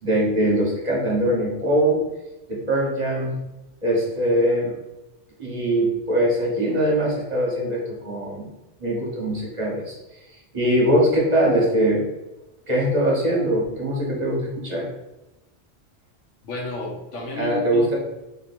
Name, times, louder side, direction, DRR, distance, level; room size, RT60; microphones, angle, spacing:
voice 1, 0.0-2.1 2.5-3.4 3.8-4.7 5.4-8.5 8.8-9.9 10.5-12.0 12.7-14.4 14.6-14.8 17.4-18.0, right 1 dB, 35° right, -4 dB, 1.4 m, -22 dB
voice 2, 16.4-18.0, left 1 dB, 75° left, -1 dB, 1.3 m, -31 dB
3.2 x 3.2 x 4.3 m, 0.97 s
omnidirectional pair, 1.3 m